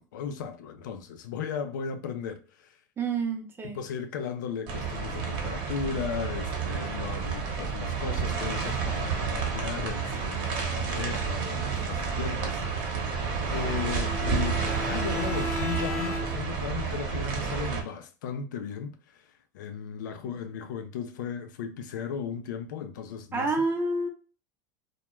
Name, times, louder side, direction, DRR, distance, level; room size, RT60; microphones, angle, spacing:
voice 1, 0.0-2.8 3.6-12.6 13.5-23.5, left 7 dB, 80° left, 0.4 m, -36 dB
voice 2, 3.0-3.8 23.3-24.1, right 3 dB, 20° right, 0.6 m, -28 dB
sound 1, 4.7-17.8, right 5 dB, 50° right, 0.9 m, -30 dB
Bowed string instrument, 13.6-16.6, left 2 dB, 55° left, 0.8 m, -36 dB
2.2 x 2.2 x 3.0 m
supercardioid pair, 110°, 10 cm